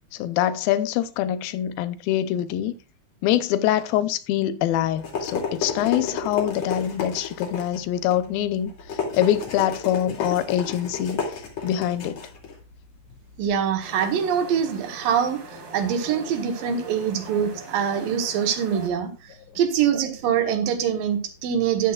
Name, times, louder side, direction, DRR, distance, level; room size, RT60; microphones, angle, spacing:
voice 1, 0.1-2.8 3.2-12.2, left 12 dB, 80° left, 2.3 m, -24 dB
sound 1, 4.7-13.5, left 5 dB, 50° left, 3.4 m, -32 dB
voice 2, 13.4-21.9, right 8 dB, 70° right, 2.7 m, -24 dB
sound 2, 13.8-18.9, right 2 dB, 90° right, 5.6 m, -41 dB
13.0 x 10.0 x 2.4 m
omnidirectional pair, 4.5 m